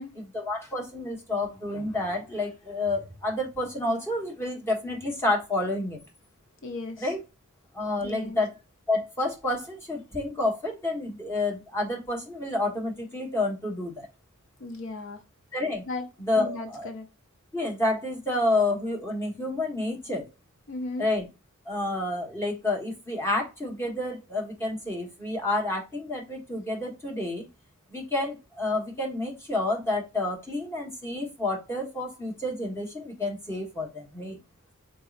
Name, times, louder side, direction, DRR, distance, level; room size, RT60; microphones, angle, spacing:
voice 1, 0.1-6.0 7.0-7.2 7.7-8.5 8.9-14.1 15.5-15.8 16.2-16.9 17.5-20.2 21.0-21.3 21.7-27.4 27.9-34.4, left 2 dB, 10° left, 1.1 m, -29 dB
voice 2, 6.6-7.1 8.0-8.4 14.6-15.2 15.9-16.1 16.3-17.1 20.7-21.1, left 2 dB, 60° left, 0.6 m, -36 dB
4.0 x 3.7 x 2.4 m
head